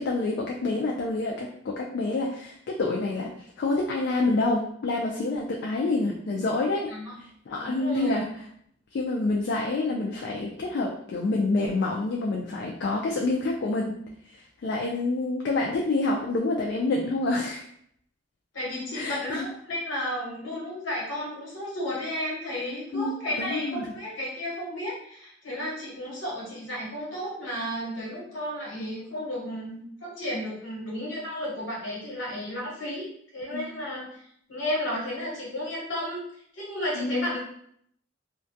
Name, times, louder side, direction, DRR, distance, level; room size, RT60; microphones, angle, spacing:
voice 1, 0.0-6.9 7.5-8.3 8.9-13.9 14.3-17.6 18.9-19.5 22.9-23.9 33.5-33.7 36.9-37.4, left 2 dB, 60° left, -1 dB, 0.3 m, -27 dB
voice 2, 7.6-8.2 18.5-33.1 33.3-34.2 34.5-36.2 36.5-37.4, left 1 dB, 75° left, -5 dB, 1.1 m, -33 dB
2.2 x 2.1 x 2.6 m, 0.68 s
head